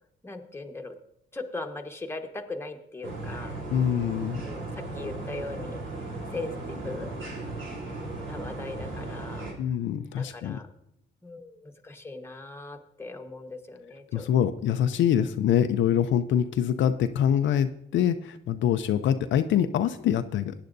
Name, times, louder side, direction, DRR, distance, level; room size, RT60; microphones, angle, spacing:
voice 1, 0.2-1.0 1.3-3.6 4.4-5.8 6.3-7.1 8.3-9.5 10.2-10.7 11.2-14.6, left 2 dB, 10° left, 3 dB, 1.2 m, -39 dB
sound 1, 3.0-9.5, right 2 dB, 75° right, 3.1 m, -36 dB
voice 2, 3.7-4.4 9.6-10.6 14.1-20.5, left 9 dB, 70° left, 9 dB, 0.5 m, -25 dB
17.0 x 9.7 x 2.6 m, 0.74 s
cardioid pair, 90°, 20 cm